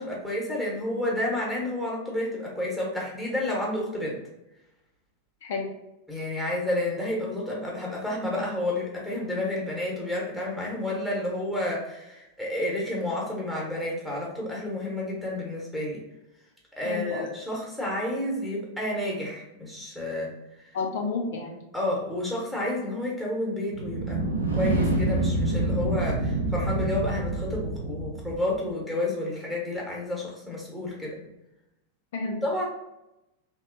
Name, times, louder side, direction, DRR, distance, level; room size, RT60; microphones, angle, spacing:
voice 1, 0.0-4.2 6.1-16.0 16.8-20.3 21.7-24.2 24.5-31.3 32.4-32.7, left 1 dB, 5° right, -4 dB, 0.9 m, -30 dB
voice 2, 5.4-5.7 16.8-17.3 20.7-21.6 32.1-32.7, left 4 dB, 55° left, 1 dB, 0.4 m, -31 dB
sound 1, 23.7-28.6, right 2 dB, 80° right, 0.5 m, -27 dB
3.0 x 2.1 x 2.5 m, 0.90 s
figure-of-eight pair, 90°, 0 cm